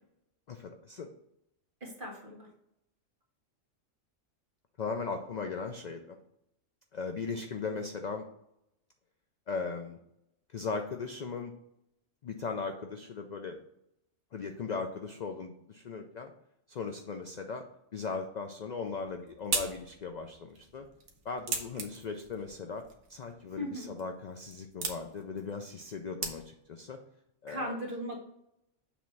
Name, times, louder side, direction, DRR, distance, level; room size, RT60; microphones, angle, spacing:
voice 1, 0.5-1.1 4.8-6.2 6.9-8.2 9.5-10.0 10.5-11.5 12.2-13.6 14.3-16.3 16.7-17.6 17.9-20.8 21.2-22.8 23.1-27.0 27.4-27.8, left 4 dB, 65° left, 5 dB, 0.4 m, -38 dB
voice 2, 1.8-2.5 23.6-23.9 27.5-28.2, equal, 40° right, -3 dB, 1.9 m, -37 dB
sound 1, 18.8-26.8, right 4 dB, 75° right, 1.3 m, -40 dB
7.1 x 3.1 x 6.0 m, 0.80 s
omnidirectional pair, 1.4 m